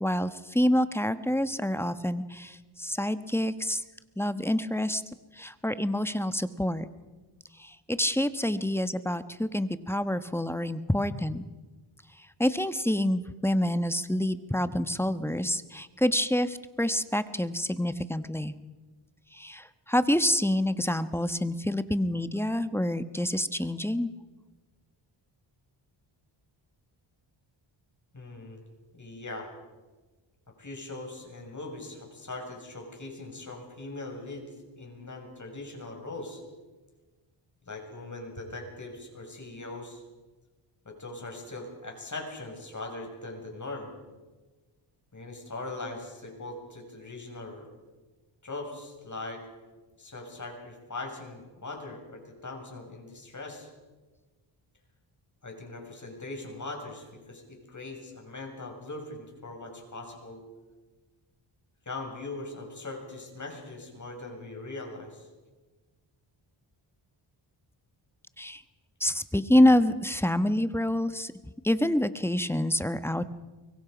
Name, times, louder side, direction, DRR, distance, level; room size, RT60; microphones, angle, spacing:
voice 1, 0.0-3.8 4.2-5.0 5.3-6.9 7.6-11.4 12.4-18.6 19.3-24.1 68.4-68.6 69.0-71.3 71.6-73.3, left 1 dB, 5° left, 12 dB, 1.1 m, -27 dB
voice 2, 28.1-28.6 28.9-29.5 30.6-34.4 34.8-36.4 37.7-40.0 40.8-43.9 45.1-47.7 48.4-49.4 50.0-53.7 55.4-60.4 61.8-65.3, left 2 dB, 35° left, 2 dB, 6.6 m, -40 dB
24.0 x 22.5 x 5.2 m, 1.2 s
cardioid pair, 65°, 50 cm